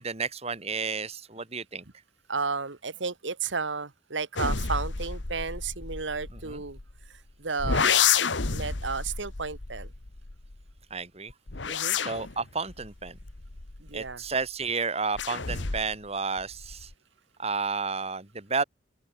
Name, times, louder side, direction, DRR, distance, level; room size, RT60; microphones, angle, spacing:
voice 1, 0.0-1.8 6.5-6.6 10.9-11.3 12.0-13.2 13.9-16.9 17.4-18.6, right 4 dB, 35° right, 2.9 m, -31 dB
voice 2, 2.3-6.8 7.1-8.0 8.5-9.9 11.7-12.0 13.8-14.2, right 4 dB, 90° right, 1.8 m, -33 dB
sound 1, 4.4-7.1 7.6-10.7 11.3-14.3 15.1-16.1 16.4-16.9, left 6 dB, 85° left, 1.6 m, -30 dB
open air
head